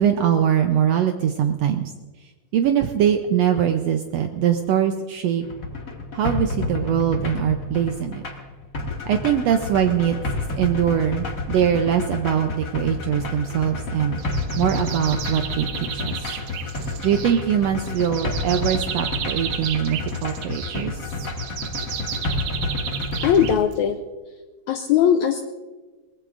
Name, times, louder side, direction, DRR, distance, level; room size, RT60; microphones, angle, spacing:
voice 1, 0.0-1.9 2.5-5.4 6.1-8.2 9.0-10.1 10.6-14.2 14.6-15.7 15.9-16.4 17.0-21.1, right 9 dB, 85° right, 6 dB, 1.4 m, -22 dB
sound 1, 5.4-23.5, left 2 dB, 40° left, 1.3 m, -30 dB
sound 2, 14.2-24.0, right 9 dB, 70° right, 1.7 m, -33 dB
voice 2, 23.2-24.0 24.7-25.4, left 8 dB, 75° left, 6 dB, 1.8 m, -19 dB
22.5 x 19.5 x 2.5 m, 1.3 s
omnidirectional pair, 3.8 m